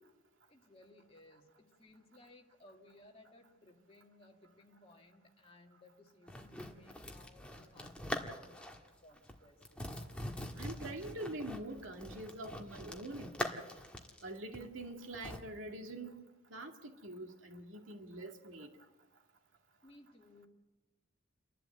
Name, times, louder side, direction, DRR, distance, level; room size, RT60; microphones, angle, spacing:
voice 1, 0.5-9.9 19.8-20.5, left 2 dB, 30° left, 2.2 m, -61 dB
sound 1, 6.3-8.9 9.2-9.3 9.6-15.4, left 1 dB, 5° left, 1.6 m, -43 dB
voice 2, 10.6-13.6 14.2-16.2 16.5-18.7, right 1 dB, 85° right, 2.2 m, -45 dB
30.0 x 12.0 x 8.1 m
head